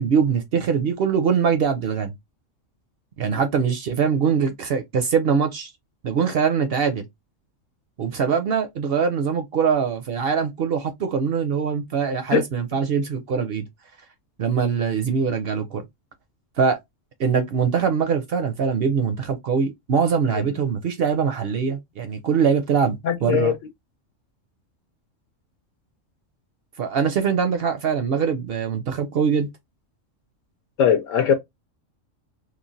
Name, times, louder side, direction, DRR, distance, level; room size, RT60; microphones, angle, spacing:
voice 1, 0.0-2.1 3.2-5.7 6.0-7.1 8.0-13.6 14.4-15.9 16.6-16.8 17.2-23.5 26.8-29.5, right 6 dB, 65° right, 0.6 m, -22 dB
voice 2, 23.0-23.5 30.8-31.3, left 8 dB, 75° left, 0.9 m, -19 dB
3.1 x 2.1 x 2.5 m
omnidirectional pair, 1.3 m